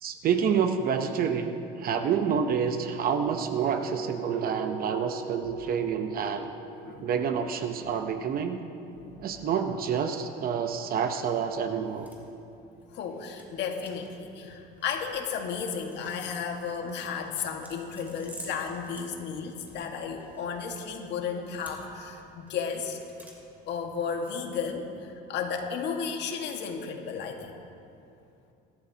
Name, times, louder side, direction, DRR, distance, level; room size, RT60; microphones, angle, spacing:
voice 1, 0.0-6.5 7.0-8.6 9.2-12.1, right 7 dB, 45° right, 7 dB, 0.8 m, -28 dB
sound 1, 3.1-8.9, right 6 dB, 70° right, 3.5 m, -40 dB
sound 2, 11.4-24.8, equal, 10° right, 2.9 m, -52 dB
voice 2, 12.9-23.0 23.7-27.6, left 6 dB, 60° left, 3 dB, 1.7 m, -34 dB
23.0 x 12.5 x 2.9 m, 2.7 s
cardioid pair, 115°, 20 cm